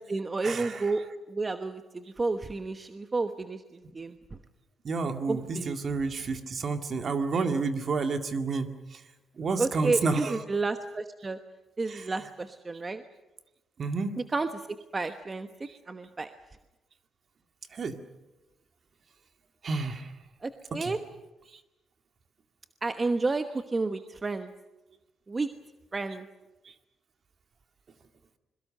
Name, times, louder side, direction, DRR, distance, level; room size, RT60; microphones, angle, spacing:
voice 1, 0.0-4.2 5.3-5.8 9.6-11.4 11.8-13.0 14.3-14.7 14.9-15.5 15.9-16.3 20.4-21.0 22.8-24.5 25.3-25.5 25.9-26.3, right 3 dB, 25° right, 8 dB, 1.1 m, -31 dB
voice 2, 4.8-8.7 9.4-10.4 11.9-12.0 13.8-14.1 17.7-18.0 19.6-20.1 20.8-20.9, right 4 dB, 45° right, 7 dB, 2.2 m, -30 dB
26.5 x 22.0 x 6.7 m, 1.0 s
cardioid pair, 90°, 0 cm